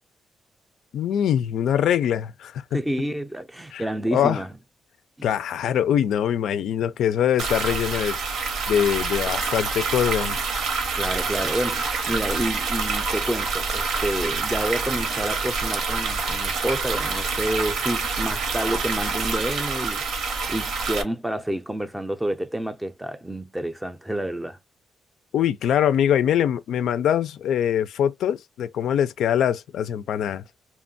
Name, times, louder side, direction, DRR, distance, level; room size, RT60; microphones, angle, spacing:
voice 1, 0.9-2.8 3.7-3.8 4.1-4.4 5.2-8.2 8.7-10.4 25.3-30.6, left 9 dB, 80° left, 0.3 m, -23 dB
voice 2, 2.7-4.5 10.9-20.0 20.5-24.6, right 1 dB, 5° right, 0.4 m, -29 dB
sound 1, 7.4-21.0, right 4 dB, 80° right, 0.9 m, -27 dB
2.9 x 2.2 x 2.5 m
cardioid pair, 145°, 0 cm